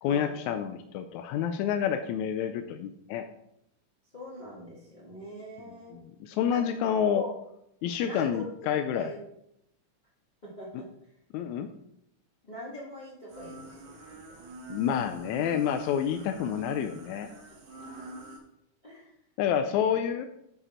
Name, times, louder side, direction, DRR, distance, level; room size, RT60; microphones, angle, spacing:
voice 1, 0.0-3.3 5.9-7.2 7.8-9.1 11.3-11.7 14.7-17.3 19.4-20.3, left 8 dB, 80° left, 7 dB, 1.7 m, -28 dB
voice 2, 4.1-6.0 6.5-6.7 7.1-7.3 8.0-8.5 8.9-9.2 10.4-10.8 12.4-14.5 17.3-17.6 18.8-19.1, left 1 dB, 25° left, -7 dB, 1.1 m, -43 dB
sound 1, 13.3-18.4, right 2 dB, 70° right, 2.8 m, -46 dB
9.8 x 4.8 x 4.3 m, 0.77 s
omnidirectional pair, 3.7 m